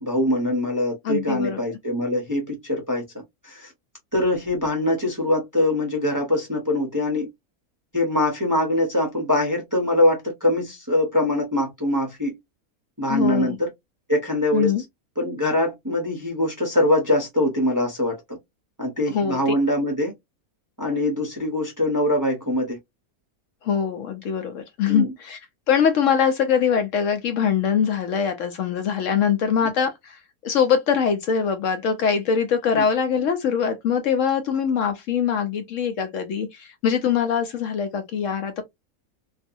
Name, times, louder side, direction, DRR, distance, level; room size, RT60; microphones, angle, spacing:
voice 1, 0.0-3.0 3.4-3.7 4.1-7.3 7.9-12.4 13.0-13.7 14.1-14.7 15.2-18.2 18.8-20.1 20.8-22.8 24.9-25.1 32.7-32.8, left 1 dB, 20° right, 0.6 m, -23 dB
voice 2, 1.0-1.6 13.1-13.6 14.5-14.8 19.1-19.5 23.6-25.4 25.7-38.6, left 7 dB, 65° left, 0.9 m, -23 dB
2.6 x 2.4 x 2.5 m
omnidirectional pair, 1.5 m